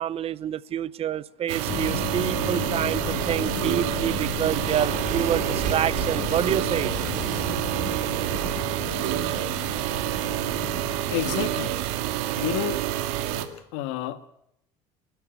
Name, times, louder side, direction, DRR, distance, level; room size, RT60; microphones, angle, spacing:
voice 1, 0.0-6.9, right 10 dB, 40° right, 18 dB, 0.9 m, -27 dB
sound 1, 1.5-13.5, right 13 dB, 85° right, 2.2 m, -28 dB
sound 2, 1.7-11.6, left 9 dB, 60° left, 1.6 m, -35 dB
sound 3, 3.1-10.9, right 8 dB, 60° right, 6.2 m, -37 dB
voice 2, 11.1-11.7 12.4-12.8 13.7-14.3, left 12 dB, 85° left, 11 dB, 1.7 m, -29 dB
30.0 x 12.5 x 9.2 m, 0.76 s
supercardioid pair, 110°, 15 cm